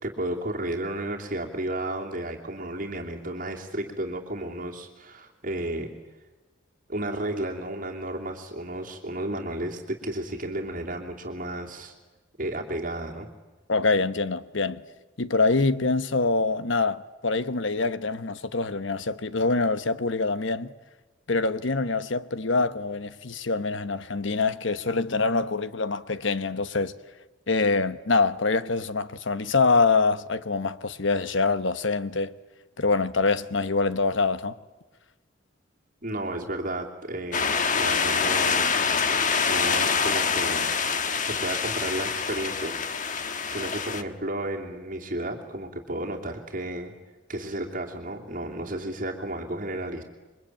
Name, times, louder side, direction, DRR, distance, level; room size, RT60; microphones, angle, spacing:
voice 1, 0.0-5.9 6.9-11.9 12.4-13.3 36.0-38.7 39.5-40.7 41.2-42.9 43.4-46.9 47.3-50.0, right 1 dB, 45° right, 2.8 m, -33 dB
voice 2, 13.7-14.8 15.2-20.7 21.3-26.9 27.5-32.3 32.8-34.6, left 3 dB, 70° left, 1.1 m, -25 dB
sound 1, 37.3-44.0, left 5 dB, 40° left, 1.3 m, -25 dB
28.5 x 23.0 x 8.9 m
head